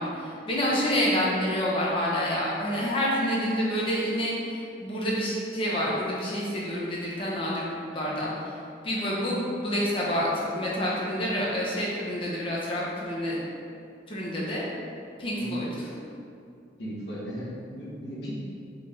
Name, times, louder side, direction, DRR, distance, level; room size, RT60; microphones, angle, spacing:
voice 1, 0.0-8.5 8.8-13.4 14.1-14.6 15.2-15.6, equal, 30° left, -6 dB, 0.5 m, -28 dB
voice 2, 16.8-18.3, equal, 70° left, -7 dB, 0.9 m, -36 dB
3.7 x 3.0 x 2.5 m, 2.4 s
head